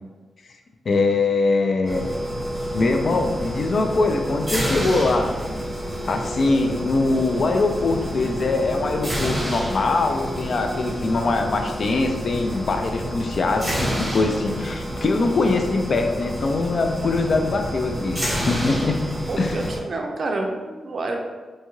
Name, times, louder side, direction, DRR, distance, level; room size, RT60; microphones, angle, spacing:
voice 1, 0.9-2.1 2.7-5.3 6.1-19.0 19.4-19.6, left 3 dB, 55° left, 5 dB, 0.3 m, -22 dB
sound 1, 1.8-19.8, equal, 5° right, 1.0 m, -29 dB
voice 2, 19.3-21.2, right 2 dB, 55° right, 2 dB, 0.4 m, -28 dB
2.7 x 2.3 x 3.0 m, 1.3 s
cardioid pair, 95°, 0 cm